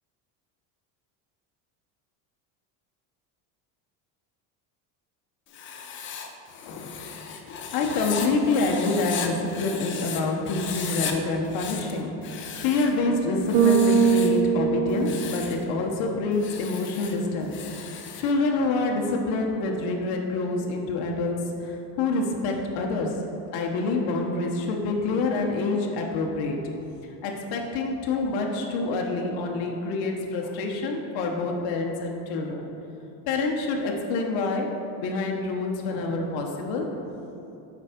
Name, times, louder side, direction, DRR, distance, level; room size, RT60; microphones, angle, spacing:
Writing, 5.5-10.2 10.5-11.1 11.4-13.0 13.4-14.4 14.9-15.6 16.3-18.3, left 7 dB, 30° left, 0.5 m, -36 dB
voice 1, 6.6-23.2 23.5-26.8 27.2-32.7 33.3-34.7 35.0-37.1, left 3 dB, 65° left, 1 dB, 1.0 m, -27 dB
Bass guitar, 13.5-15.9, right 6 dB, 90° right, 0.8 m, -22 dB
7.2 x 4.5 x 5.0 m, 2.9 s
cardioid pair, 155°, 40 cm